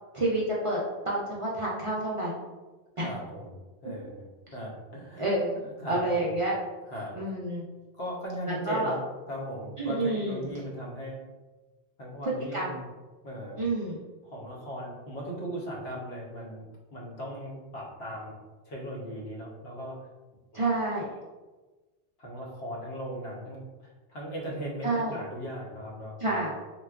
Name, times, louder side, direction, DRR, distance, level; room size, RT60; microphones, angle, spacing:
voice 1, 0.1-2.4 3.0-3.1 3.8-3.9 5.2-5.6 5.9-6.6 7.1-7.6 8.5-8.9 9.8-10.4 12.2-12.7 13.6-14.0 20.5-21.1 24.8-25.2 26.2-26.5, right 2 dB, 50° right, -5 dB, 0.4 m, -29 dB
voice 2, 3.0-5.3 5.6-6.4 6.9-7.1 8.0-9.0 9.3-11.2 12.0-12.9 13.2-13.6 14.2-16.7 16.9-18.3 18.7-20.0 20.5-20.9 22.2-26.5, equal, 90° left, -3 dB, 1.1 m, -38 dB
3.8 x 2.2 x 2.3 m, 1.2 s
omnidirectional pair, 1.0 m